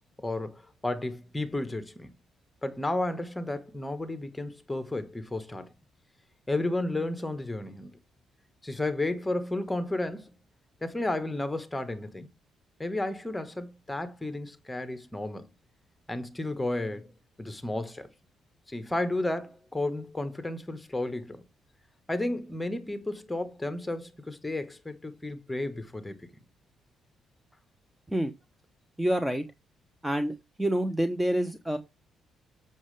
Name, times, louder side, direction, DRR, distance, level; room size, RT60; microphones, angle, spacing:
voice 1, 0.2-2.1 2.6-5.7 6.5-7.9 8.6-10.3 10.8-12.3 12.8-15.6 16.1-18.1 18.7-21.4 22.1-26.2, left 2 dB, 10° left, 1.3 m, -32 dB
voice 2, 29.0-29.4 30.0-31.8, right 1 dB, 5° right, 0.8 m, -27 dB
7.2 x 6.5 x 3.3 m
cardioid pair, 90°, 0 cm